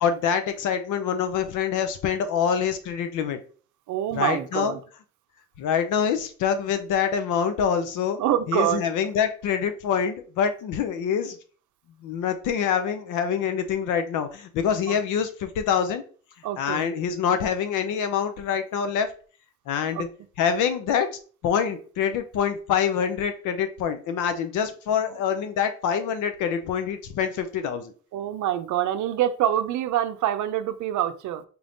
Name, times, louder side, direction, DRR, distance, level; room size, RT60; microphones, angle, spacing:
voice 1, 0.0-3.4 4.1-4.7 5.6-8.2 8.5-11.4 12.0-16.0 16.6-19.1 19.7-20.1 20.4-21.1 21.4-27.9, left 7 dB, 85° left, 8 dB, 0.6 m, -25 dB
voice 2, 3.9-4.8 8.2-8.8 14.9-15.0 16.4-16.9 19.9-20.1 28.1-31.4, right 11 dB, 75° right, 10 dB, 0.5 m, -25 dB
4.4 x 3.5 x 2.6 m, 0.41 s
cardioid pair, 90°, 30 cm